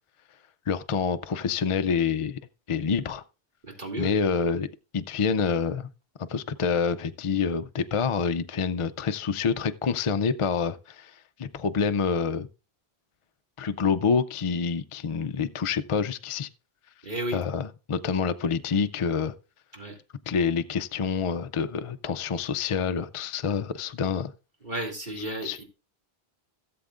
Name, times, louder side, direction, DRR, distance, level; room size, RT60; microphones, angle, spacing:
voice 1, 0.7-2.4 2.7-3.2 4.0-4.7 4.9-5.9 6.3-12.5 13.6-16.5 17.3-19.3 20.3-24.3 25.4-25.6, left 6 dB, 45° left, 0.4 m, -27 dB
voice 2, 3.8-4.1 17.0-17.4 19.7-20.0 24.6-25.6, right 1 dB, 50° right, 2.6 m, -33 dB
17.0 x 7.7 x 2.5 m
omnidirectional pair, 1.1 m